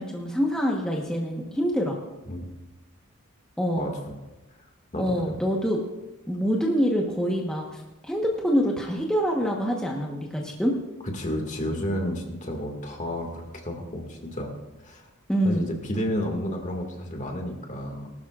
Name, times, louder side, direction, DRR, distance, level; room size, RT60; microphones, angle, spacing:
voice 1, 0.0-2.0 3.6-3.9 5.0-5.8 6.3-10.8 15.3-15.7, equal, 5° left, -2 dB, 1.1 m, -25 dB
voice 2, 3.8-4.2 4.9-5.4 11.0-14.5 14.8-15.1 15.4-18.1, equal, 35° left, 2 dB, 1.9 m, -31 dB
19.5 x 12.5 x 2.4 m, 1.1 s
head